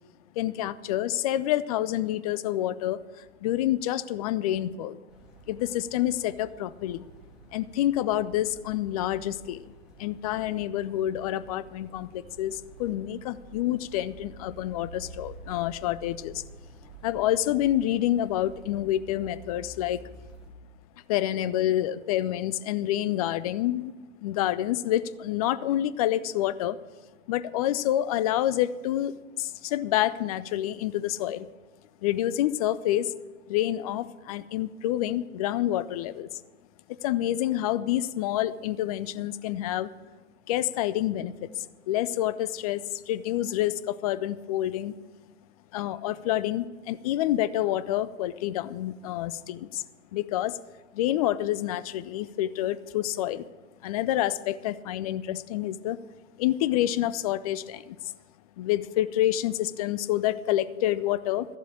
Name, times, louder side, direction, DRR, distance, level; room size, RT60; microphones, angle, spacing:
voice 1, 0.4-3.0 3.4-5.0 5.5-7.0 7.5-9.6 10.0-16.4 17.0-20.0 21.1-23.9 24.2-26.8 27.3-31.5 32.0-33.1 33.5-36.3 37.0-39.9 40.5-44.9 45.7-49.8 50.1-50.6 50.9-53.4 53.8-56.0 56.4-57.8 58.6-61.5, left 13 dB, 30° left, 16 dB, 0.4 m, -28 dB
sound 1, 5.1-20.5, right 2 dB, ahead, 2.9 m, -49 dB
12.5 x 7.4 x 8.7 m, 1.3 s
figure-of-eight pair, 100°, 41 cm